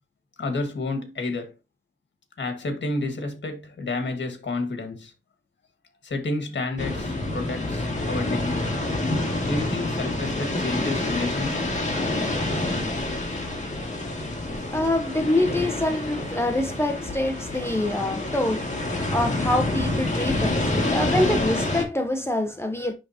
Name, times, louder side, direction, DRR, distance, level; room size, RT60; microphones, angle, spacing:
voice 1, 0.4-1.5 2.4-5.1 6.0-8.8 9.4-11.8, left 2 dB, 60° left, 1.8 m, -30 dB
sound 1, 6.8-21.8, left 2 dB, 35° left, 2.1 m, -27 dB
voice 2, 14.7-18.7 19.1-22.9, left 1 dB, 10° left, 0.8 m, -25 dB
10.0 x 3.7 x 2.8 m
wide cardioid pair, 100°, 20 cm